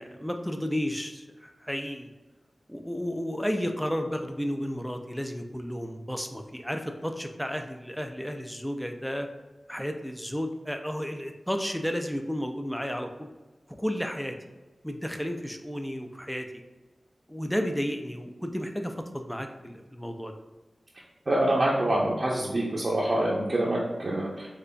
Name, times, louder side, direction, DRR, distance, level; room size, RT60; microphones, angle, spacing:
voice 1, 0.0-2.1 2.7-9.3 9.7-13.3 13.8-14.3 14.8-16.5 17.3-20.3, equal, 5° left, 4 dB, 0.4 m, -32 dB
voice 2, 21.3-24.5, right 1 dB, 50° right, -6 dB, 0.6 m, -26 dB
3.8 x 3.3 x 2.2 m, 1.2 s
wide cardioid pair, 60°, 0 cm